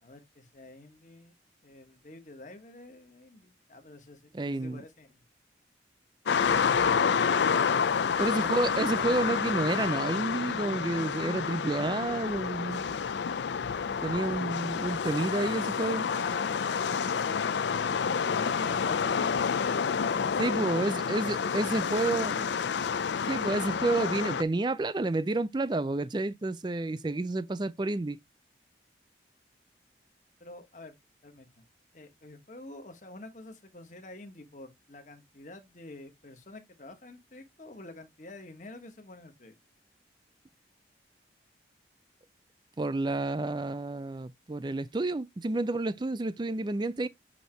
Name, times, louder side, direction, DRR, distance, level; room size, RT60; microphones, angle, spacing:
voice 1, 0.0-1.3 1.6-5.1 15.9-22.7 30.4-31.0 31.2-31.6 31.9-39.5, left 2 dB, 40° left, 1.2 m, -48 dB
voice 2, 4.3-4.8 8.2-12.9 14.0-16.1 20.4-22.3 23.3-28.2 42.8-47.1, right 2 dB, 25° right, 0.4 m, -30 dB
sound 1, 6.3-24.4, left 6 dB, 75° left, 0.4 m, -29 dB
8.2 x 2.8 x 4.4 m
head